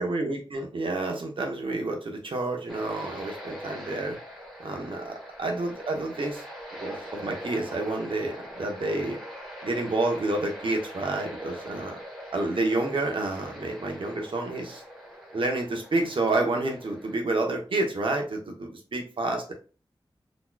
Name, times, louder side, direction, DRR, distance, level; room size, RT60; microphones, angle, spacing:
voice 1, 0.0-4.2 4.6-6.4 6.8-9.2 9.6-12.0 12.3-14.8 15.3-19.5, right 2 dB, 75° right, 2 dB, 0.9 m, -29 dB
sound 1, 2.7-17.2, equal, ahead, 1.2 m, -42 dB
4.0 x 3.0 x 2.3 m, 0.35 s
wide cardioid pair, 90°, 9 cm